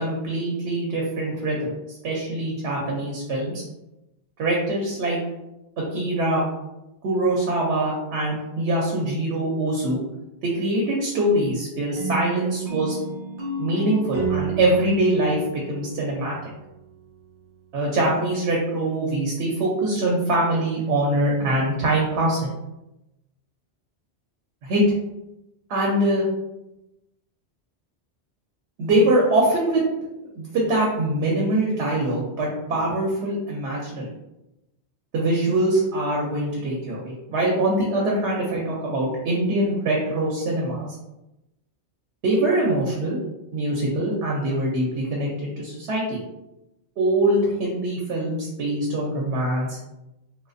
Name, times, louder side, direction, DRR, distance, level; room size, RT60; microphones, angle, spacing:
voice 1, 0.0-3.6 4.4-5.2 5.9-6.4 7.0-10.0 10.4-13.0 13.6-16.3 17.7-22.5 24.6-24.8 25.7-26.3 28.8-29.8 30.3-34.1 35.1-40.9 42.2-43.2 43.5-45.3 45.6-46.2 47.0-49.8, right 1 dB, 80° right, -3 dB, 0.9 m, -23 dB
sound 1, 12.0-16.8, right 5 dB, 50° right, 0.6 m, -31 dB
2.3 x 2.3 x 2.5 m, 0.93 s
omnidirectional pair, 1.1 m